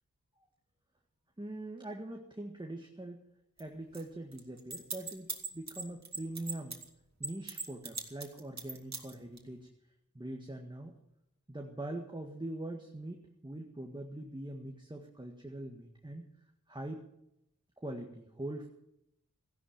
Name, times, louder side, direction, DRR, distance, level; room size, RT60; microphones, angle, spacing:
voice 1, 1.4-3.2 3.6-6.8 7.2-9.7 10.2-10.9 11.5-16.2 16.7-17.1 17.8-18.7, right 1 dB, 15° right, 2 dB, 1.8 m, -42 dB
sound 1, 3.6-3.7 3.9-4.0 4.3-6.8 7.2-9.4, right 4 dB, 55° right, 2.4 m, -39 dB
15.0 x 11.0 x 7.2 m, 0.82 s
cardioid pair, 45°, 32 cm